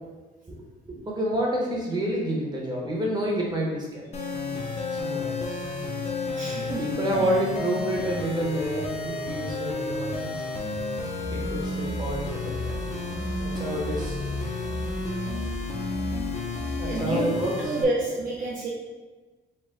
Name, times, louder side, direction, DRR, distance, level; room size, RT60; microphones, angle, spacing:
voice 1, 1.1-4.0 4.9-5.3 6.6-10.2 11.3-12.8 13.4-14.2 16.8-17.7, right 1 dB, 25° right, -3 dB, 0.9 m, -28 dB
sound 1, 4.1-17.8, left 2 dB, 40° left, 0.6 m, -31 dB
voice 2, 6.4-6.8 16.8-17.3 17.6-18.7, right 2 dB, 50° right, -4 dB, 0.6 m, -28 dB
4.4 x 2.2 x 3.7 m, 1.3 s
cardioid pair, 150°, 18 cm